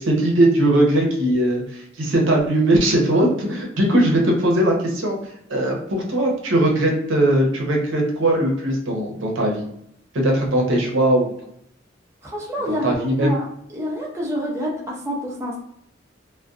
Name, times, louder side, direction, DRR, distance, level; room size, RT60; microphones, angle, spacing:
voice 1, 0.0-5.2 5.5-9.6 10.1-11.3 12.7-13.3, right 1 dB, 75° right, 0 dB, 0.7 m, -19 dB
voice 2, 12.2-15.6, equal, 15° right, -4 dB, 0.4 m, -27 dB
2.5 x 2.2 x 2.3 m, 0.73 s
head